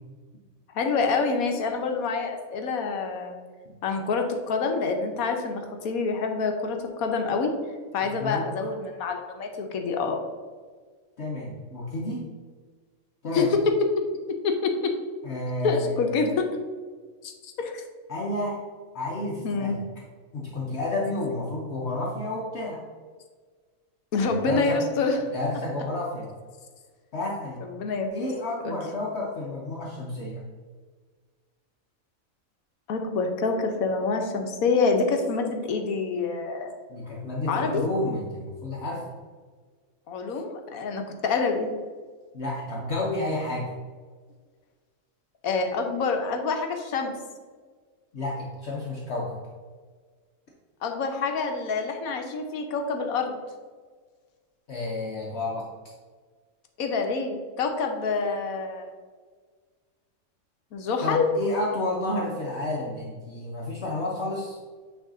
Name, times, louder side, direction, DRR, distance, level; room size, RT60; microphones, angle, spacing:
voice 1, 0.7-3.3 3.8-7.5 7.9-10.2 13.3-13.7 14.3-15.0 15.6-16.5 17.2-17.8 19.4-19.8 24.1-25.2 27.7-28.1 28.6-28.8 32.9-36.7 37.5-37.8 40.1-41.7 45.4-47.1 50.8-53.4 56.8-58.9 60.7-61.3, left 4 dB, 90° left, 4 dB, 1.3 m, -26 dB
voice 2, 8.0-8.4 11.2-12.3 13.2-13.5 15.2-16.0 18.1-18.6 18.9-19.8 20.3-22.8 24.2-24.8 25.3-26.3 27.1-27.6 28.1-30.4 36.9-39.1 42.3-43.7 48.1-49.4 54.7-55.7 61.0-64.6, left 2 dB, 55° left, -3 dB, 1.1 m, -30 dB
8.9 x 3.2 x 3.8 m, 1.5 s
omnidirectional pair, 1.4 m